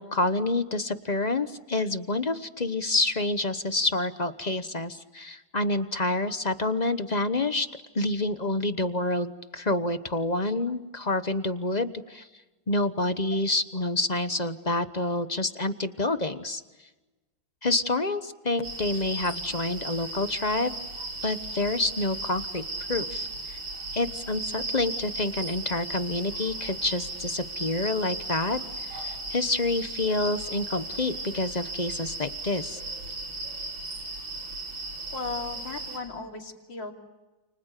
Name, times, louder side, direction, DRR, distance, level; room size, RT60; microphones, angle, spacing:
voice 1, 0.0-7.7 7.9-12.3 12.7-16.6 17.6-20.7 21.2-22.6 22.9-23.6 23.9-32.8, left 2 dB, 30° left, 10 dB, 0.9 m, -28 dB
sound 1, 18.6-36.0, right 2 dB, 85° right, 6.8 m, -36 dB
voice 2, 35.1-36.9, left 3 dB, 70° left, 3 dB, 3.6 m, -36 dB
30.0 x 29.5 x 6.7 m, 1.2 s
omnidirectional pair, 2.1 m